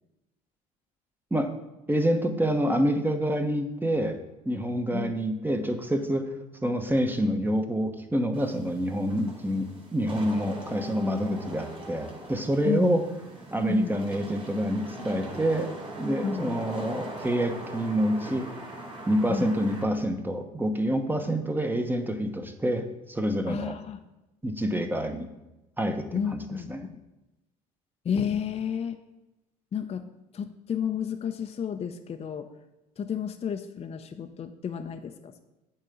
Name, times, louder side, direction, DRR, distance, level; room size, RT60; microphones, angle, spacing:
voice 1, 1.9-4.2 4.4-6.3 6.6-13.0 13.5-15.7 16.0-18.5 19.1-23.7 24.4-25.3 25.8-26.4 26.7-26.8, equal, 10° right, 6 dB, 1.0 m, -27 dB
Wind / Rain, 8.3-19.8, right 1 dB, 30° right, 2.5 m, -41 dB
voice 2, 12.6-13.0 13.7-14.0 16.2-16.6 19.3-19.5 23.5-24.0 26.1-27.0 28.0-29.0 29.7-30.0 30.3-32.5 33.0-35.4, left 7 dB, 35° left, 6 dB, 0.6 m, -31 dB
8.8 x 3.7 x 6.8 m, 0.99 s
hypercardioid pair, 65°, 19 cm